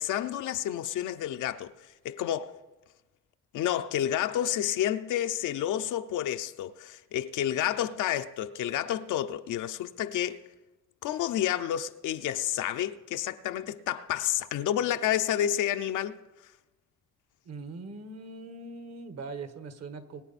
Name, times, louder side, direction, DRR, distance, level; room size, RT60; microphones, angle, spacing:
voice 1, 0.0-2.6 3.5-10.4 11.0-16.2, left 11 dB, 80° left, 0.7 m, -30 dB
voice 2, 17.4-20.2, right 3 dB, 55° right, 1.4 m, -41 dB
22.5 x 8.8 x 4.2 m
cardioid pair, 90°, 30 cm